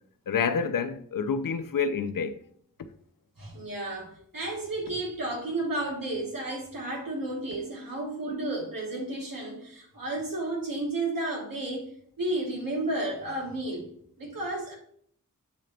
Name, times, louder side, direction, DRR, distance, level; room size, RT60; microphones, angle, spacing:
voice 1, 0.3-2.3, left 6 dB, 80° left, 0.6 m, -28 dB
voice 2, 3.4-11.9 12.2-13.9 14.2-14.7, right 2 dB, 85° right, 1.8 m, -32 dB
7.5 x 3.8 x 3.3 m
wide cardioid pair, 85°, 33 cm